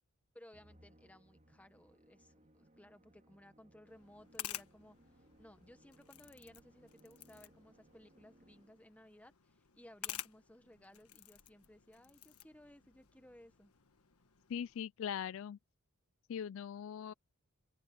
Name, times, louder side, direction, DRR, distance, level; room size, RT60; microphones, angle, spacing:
voice 1, 0.3-5.0 5.4-13.7, left 1 dB, 5° left, 1.3 m, -60 dB
Musical instrument, 0.5-9.0, right 1 dB, 35° right, 3.4 m, -66 dB
sound 1, 3.9-14.8, left 12 dB, 85° left, 1.3 m, -52 dB
voice 2, 14.5-15.6 16.3-17.1, left 8 dB, 60° left, 0.3 m, -40 dB
open air
head